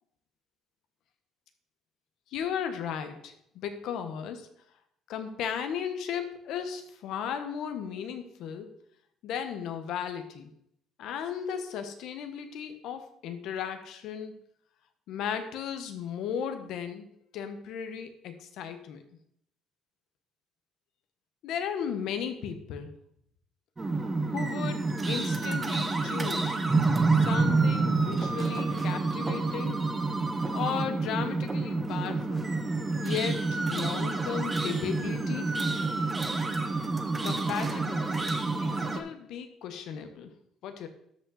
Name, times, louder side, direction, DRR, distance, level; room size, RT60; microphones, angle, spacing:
voice 1, 2.3-4.5 5.1-8.7 9.2-10.5 11.0-14.3 15.1-19.0 21.4-22.9 24.3-26.6 27.1-29.8 30.5-32.5 33.0-35.5 37.2-40.3 40.6-40.9, left 8 dB, 65° left, 8 dB, 1.1 m, -35 dB
sound 1, 23.8-39.0, right 3 dB, 15° right, 0.8 m, -28 dB
13.0 x 5.4 x 4.0 m, 0.71 s
cardioid pair, 160°, 0 cm